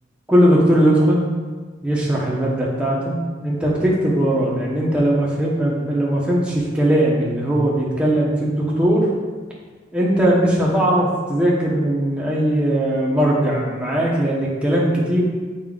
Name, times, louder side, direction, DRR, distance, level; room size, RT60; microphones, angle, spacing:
voice 1, 0.3-1.3 1.8-9.1 9.9-15.2, right 1 dB, 5° right, -5 dB, 1.0 m, -19 dB
7.0 x 5.5 x 2.5 m, 1.5 s
head